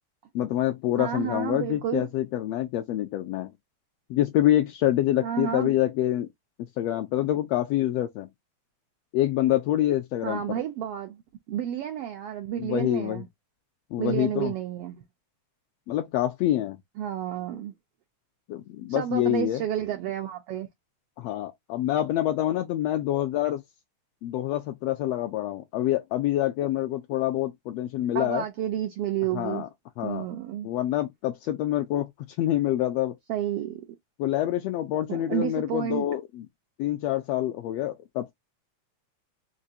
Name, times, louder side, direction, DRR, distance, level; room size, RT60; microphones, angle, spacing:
voice 1, 0.3-3.5 4.1-6.3 6.8-8.3 9.1-10.6 12.6-13.2 13.9-14.5 15.9-16.8 18.5-19.6 21.2-23.6 24.2-28.4 29.3-29.7 30.0-30.3 30.6-32.1 32.4-33.1 34.2-36.5 36.8-38.3, left 13 dB, 80° left, 1.5 m, -26 dB
voice 2, 1.0-2.1 5.2-5.7 10.2-11.2 11.5-13.3 14.0-15.0 17.0-17.7 18.9-20.7 28.1-29.6 30.0-30.7 33.3-33.9 35.1-36.1, right 11 dB, 80° right, 1.3 m, -30 dB
5.0 x 2.2 x 2.7 m
omnidirectional pair, 3.3 m